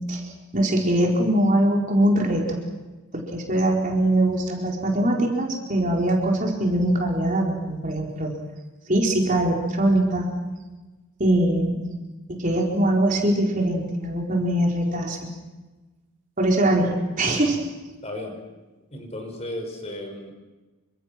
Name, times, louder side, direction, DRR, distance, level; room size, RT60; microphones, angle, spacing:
voice 1, 0.5-2.6 3.1-8.3 8.9-10.3 11.2-11.8 12.3-15.2 16.4-17.7, right 1 dB, 35° right, 0 dB, 4.5 m, -22 dB
voice 2, 18.0-18.4 18.9-20.3, left 1 dB, 30° left, 4 dB, 5.8 m, -34 dB
28.5 x 26.0 x 6.1 m, 1.2 s
head